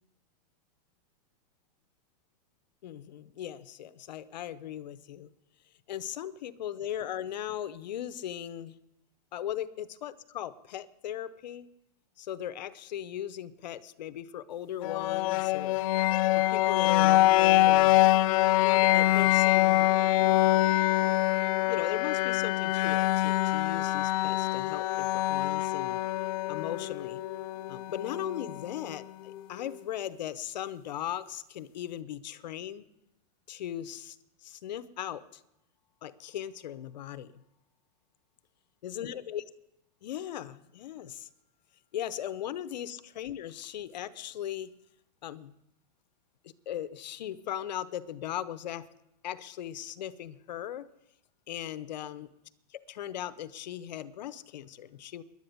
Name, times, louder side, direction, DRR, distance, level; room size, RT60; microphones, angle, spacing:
voice 1, 2.8-5.3 5.9-8.8 9.3-11.7 12.2-15.8 16.4-18.0 18.6-19.9 21.7-26.0 26.5-27.2 27.7-32.9 33.5-34.2 34.4-35.4 36.0-37.3 38.8-39.4 40.0-41.3 41.9-44.7 45.2-45.5 46.4-48.9 49.2-50.9 51.5-52.3 52.7-55.2, left 11 dB, 90° left, 15 dB, 0.8 m, -38 dB
sound 1, 14.8-28.8, left 16 dB, 55° left, 0.4 m, -25 dB
sound 2, 18.0-29.8, left 12 dB, 5° left, 1.8 m, -48 dB
10.5 x 9.6 x 9.4 m, 0.83 s
supercardioid pair, 145°, 21 cm